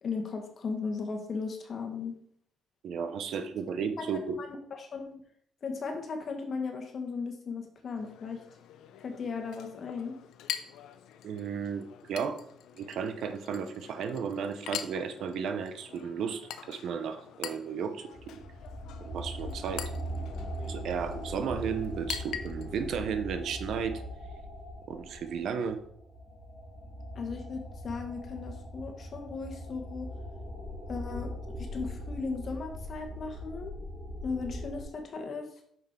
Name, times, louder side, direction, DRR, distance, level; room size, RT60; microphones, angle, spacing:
voice 1, 0.0-2.2 4.0-4.1 4.4-5.2 5.6-8.4 9.0-10.1 27.1-30.1 30.9-31.3 31.6-33.7 34.2-35.5, left 4 dB, 50° left, 4 dB, 1.5 m, -36 dB
voice 2, 2.8-4.4 11.2-12.4 12.7-16.4 16.7-18.4 19.0-19.9 20.7-24.0 24.9-25.8, right 6 dB, 75° right, 9 dB, 0.8 m, -34 dB
Chink clink, 8.0-22.9, left 10 dB, 85° left, 0.6 m, -44 dB
sound 1, 18.1-34.8, equal, 5° right, 3.3 m, -40 dB
6.2 x 5.2 x 4.5 m, 0.66 s
cardioid pair, 90°, 0 cm